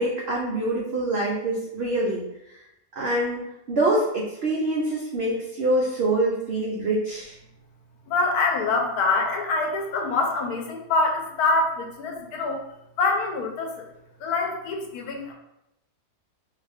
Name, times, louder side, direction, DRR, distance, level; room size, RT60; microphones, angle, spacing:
voice 1, 0.0-2.2 3.0-7.3, right 1 dB, 85° right, -5 dB, 0.5 m, -25 dB
voice 2, 8.1-12.6 13.0-13.9 14.2-15.3, left 3 dB, 70° left, 2 dB, 1.1 m, -25 dB
2.7 x 2.4 x 3.4 m, 0.85 s
omnidirectional pair, 1.8 m